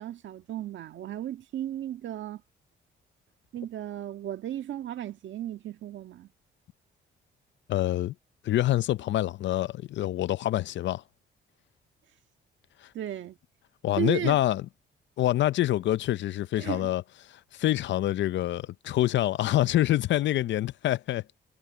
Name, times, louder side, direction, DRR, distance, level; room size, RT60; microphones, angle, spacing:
voice 1, 0.0-2.4 3.5-6.3 12.9-13.4 14.0-14.4 16.6-16.9, right 11 dB, 70° right, 1.7 m, -35 dB
voice 2, 7.7-8.1 8.4-11.0 13.8-14.7 15.2-17.0 17.5-21.2, left 14 dB, 65° left, 0.5 m, -26 dB
cardioid pair, 90°, 20 cm